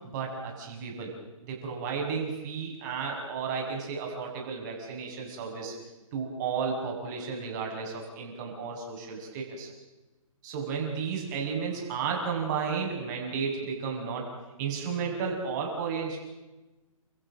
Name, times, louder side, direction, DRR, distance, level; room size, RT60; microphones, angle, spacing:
voice 1, 0.1-1.1 1.4-5.7 6.1-9.7 10.4-14.3 14.6-16.2, right 5 dB, 30° right, 0 dB, 6.6 m, -33 dB
30.0 x 14.5 x 7.5 m, 1.1 s
hypercardioid pair, 145°, 18 cm